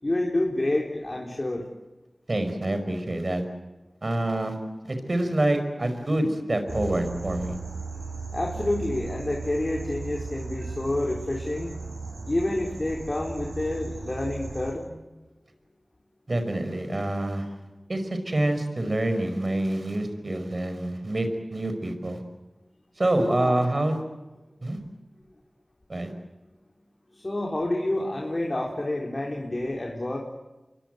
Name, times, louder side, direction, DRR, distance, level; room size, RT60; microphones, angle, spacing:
voice 1, 0.0-1.7 8.3-11.7 12.3-14.9 23.2-23.6 27.1-30.2, left 1 dB, 45° left, 0 dB, 3.8 m, -28 dB
voice 2, 2.3-3.4 4.0-4.6 4.8-7.6 16.3-17.5 17.9-22.2 23.0-24.0 24.6-24.8 25.9-26.1, right 1 dB, 55° right, 8 dB, 5.4 m, -26 dB
sound 1, 6.7-14.7, right 4 dB, 75° right, 7.7 m, -36 dB
28.0 x 23.0 x 8.0 m, 1.1 s
cardioid pair, 40°, 0 cm